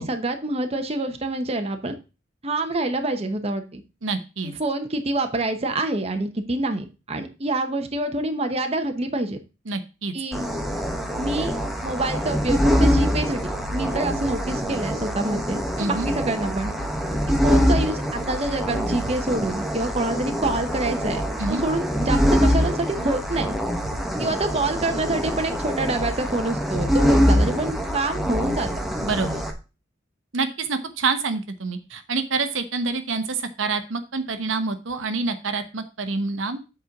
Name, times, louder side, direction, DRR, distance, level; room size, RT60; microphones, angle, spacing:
voice 1, 0.0-2.0 2.4-3.8 4.4-9.4 10.1-10.5 11.2-13.4 13.7-16.7 17.4-21.2 21.5-23.6 24.2-28.8, right 2 dB, 30° right, 6 dB, 1.0 m, -26 dB
voice 2, 4.0-4.5 9.7-10.1 15.8-16.1 21.4-21.6 29.0-29.4 30.3-36.6, right 4 dB, 75° right, 8 dB, 1.0 m, -27 dB
sound 1, 10.3-29.5, equal, ahead, 1.1 m, -24 dB
7.8 x 4.4 x 5.9 m, 0.30 s
head